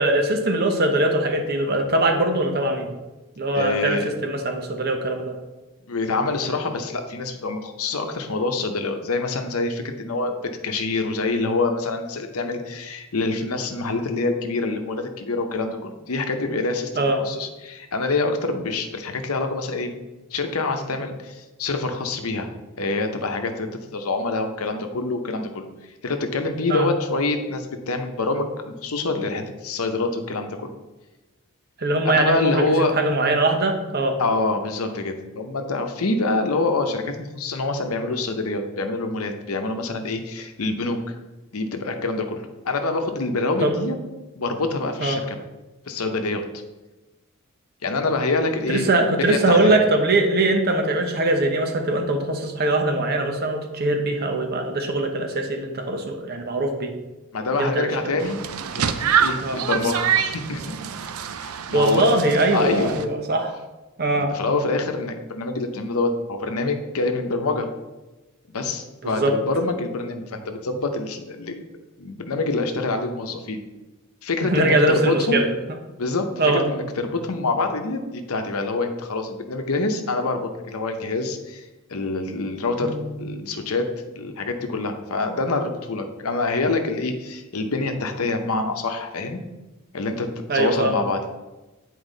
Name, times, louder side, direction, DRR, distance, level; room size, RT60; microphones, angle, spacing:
voice 1, 0.0-2.9 3.4-5.4 17.0-17.2 26.7-26.9 31.8-34.2 43.6-43.8 45.0-45.2 48.7-56.9 57.5-58.2 59.4-59.6 61.7-63.5 64.0-64.3 69.0-69.3 74.4-75.5 76.4-76.6 82.8-83.2 90.5-91.0, right 2 dB, 45° right, 4 dB, 0.9 m, -22 dB
voice 2, 3.5-4.1 5.9-20.0 20.3-22.5 22.8-25.7 26.0-30.7 32.0-32.9 34.2-41.1 41.5-44.0 44.4-45.4 45.9-46.4 47.8-49.8 57.3-58.4 58.7-60.8 61.4-62.2 62.5-63.0 64.2-67.7 68.5-71.6 72.0-73.6 74.2-75.4 76.0-83.9 84.1-89.4 89.9-91.3, left 3 dB, 85° left, 5 dB, 0.8 m, -26 dB
sound 1, 58.2-63.0, right 8 dB, 85° right, 0.5 m, -26 dB
8.2 x 4.6 x 3.9 m, 1.1 s
head